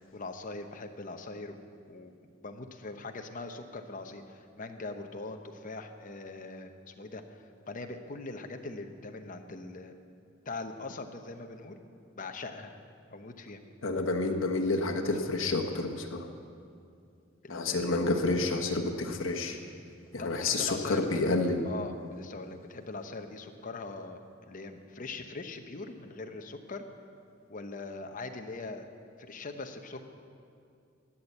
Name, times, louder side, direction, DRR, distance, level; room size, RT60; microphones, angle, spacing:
voice 1, 0.1-1.6 1.9-2.1 2.4-9.9 10.5-11.8 12.1-12.7 13.1-13.6 17.4-18.0 20.2-21.3 21.6-26.8 27.5-28.9 29.2-30.1, left 3 dB, 40° left, 6 dB, 0.9 m, -41 dB
voice 2, 13.8-16.3 17.5-19.6 20.1-21.7, left 2 dB, 80° left, 2 dB, 1.2 m, -29 dB
12.5 x 8.8 x 7.9 m, 2.4 s
head